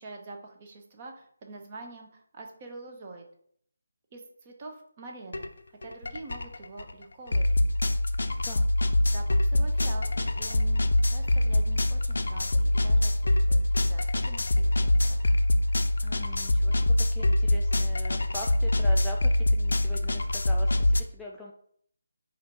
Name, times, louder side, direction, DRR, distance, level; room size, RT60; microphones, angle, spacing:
voice 1, 0.0-3.2 4.1-7.6 9.0-15.2, right 3 dB, 30° right, 2 dB, 0.8 m, -45 dB
sound 1, 5.3-5.5 5.8-21.0, left 1 dB, 65° left, 0.5 m, -24 dB
sound 2, 9.9-16.2, right 2 dB, 55° right, 1.3 m, -50 dB
voice 2, 16.0-21.5, equal, 5° left, -3 dB, 0.4 m, -42 dB
4.2 x 2.6 x 4.4 m, 0.62 s
figure-of-eight pair, 155°, 0 cm